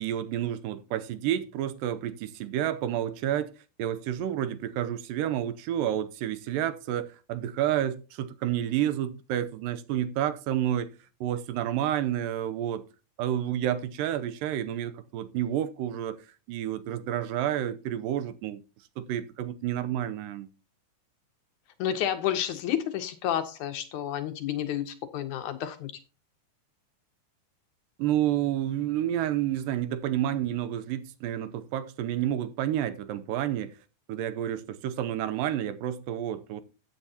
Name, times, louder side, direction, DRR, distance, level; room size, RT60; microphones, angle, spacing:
voice 1, 0.0-3.5 3.8-10.9 11.2-12.8 13.2-16.2 16.5-18.6 19.0-20.5 28.0-33.7 34.1-36.6, right 11 dB, 85° right, 2.4 m, -30 dB
voice 2, 21.8-25.9, left 10 dB, 75° left, 2.0 m, -30 dB
14.0 x 8.5 x 2.8 m
omnidirectional pair, 3.9 m